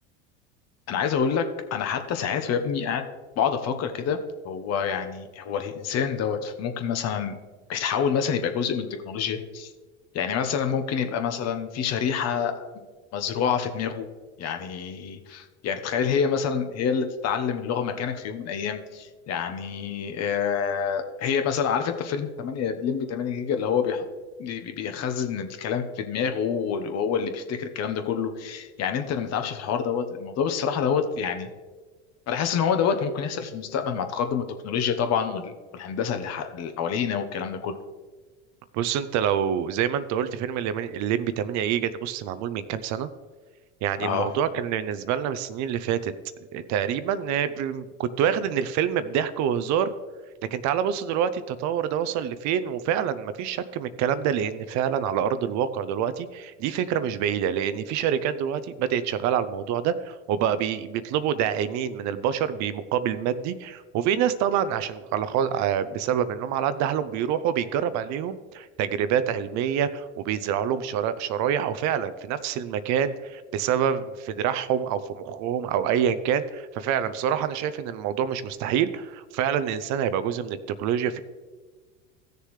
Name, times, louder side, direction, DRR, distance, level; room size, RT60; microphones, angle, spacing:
voice 1, 0.9-1.4 1.7-3.0 3.4-4.2 4.4-7.4 7.7-9.7 10.1-12.6 13.1-14.1 14.4-24.0 24.4-31.5 32.3-37.8 44.0-44.3, left 7 dB, 45° left, 7 dB, 1.1 m, -27 dB
voice 2, 38.7-43.1 43.8-46.1 46.5-49.9 50.5-81.2, right 9 dB, 50° right, 13 dB, 0.7 m, -26 dB
15.5 x 6.7 x 3.2 m, 1.4 s
hypercardioid pair, 90°, 35 cm